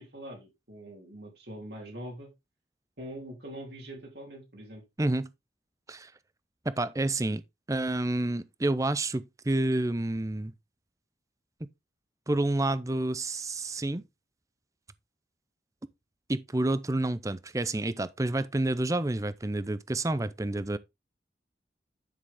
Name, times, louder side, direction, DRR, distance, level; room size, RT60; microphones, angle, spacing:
voice 1, 0.0-2.3 3.0-4.8, right 1 dB, 65° right, 3.0 m, -43 dB
voice 2, 5.0-5.3 5.9-6.1 6.7-7.4 7.7-10.5 12.3-14.0 16.3-20.8, right 2 dB, 20° right, 0.5 m, -29 dB
10.0 x 6.2 x 3.5 m
head